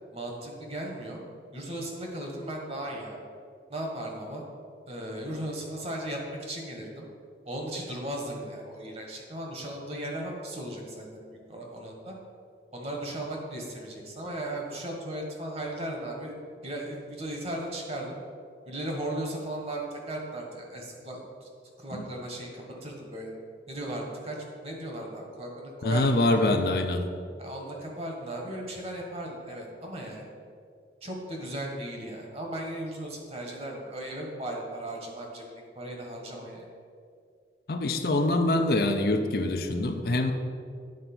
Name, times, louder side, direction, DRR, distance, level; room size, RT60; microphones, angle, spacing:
voice 1, 0.1-1.2 1.5-3.2 3.7-4.4 4.9-7.1 7.4-12.1 12.7-16.4 16.6-18.2 18.6-21.5 21.8-23.3 23.7-26.5 27.4-30.3 31.0-35.5 35.7-36.7, right 1 dB, 35° right, 0 dB, 1.4 m, -36 dB
voice 2, 25.8-27.0 37.7-40.3, left 2 dB, 55° left, 6 dB, 0.6 m, -24 dB
9.4 x 4.6 x 6.0 m, 2.3 s
head